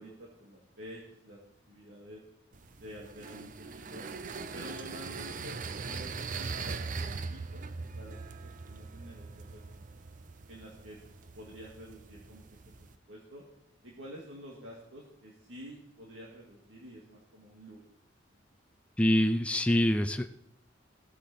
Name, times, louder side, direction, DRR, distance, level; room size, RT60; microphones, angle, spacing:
voice 1, 0.0-1.4 1.7-2.2 2.8-4.1 4.5-5.6 5.9-7.6 7.9-9.8 10.5-11.0 11.3-12.4 12.8-13.4 13.8-17.8, equal, 85° right, -3 dB, 2.3 m, -49 dB
sound 1, 2.5-13.0, right 4 dB, 45° right, 0.6 m, -41 dB
voice 2, 19.0-20.3, left 1 dB, 5° left, 7 dB, 0.4 m, -25 dB
16.0 x 8.4 x 4.3 m, 0.78 s
head